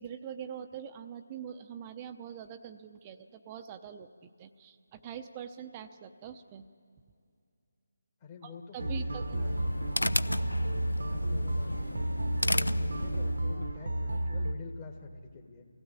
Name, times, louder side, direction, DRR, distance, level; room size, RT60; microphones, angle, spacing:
voice 1, 0.0-6.6 8.4-9.8, right 8 dB, 20° right, 8 dB, 0.7 m, -44 dB
voice 2, 8.2-9.7 10.9-12.1 12.4-15.7, left 5 dB, 30° left, 0 dB, 1.6 m, -48 dB
sound 1, 8.8-14.5, right 1 dB, 65° right, 1.2 m, -32 dB
sound 2, 9.1-13.6, left 1 dB, 85° left, 0.5 m, -34 dB
23.5 x 16.0 x 8.9 m, 2.4 s
figure-of-eight pair, 150°, 0 cm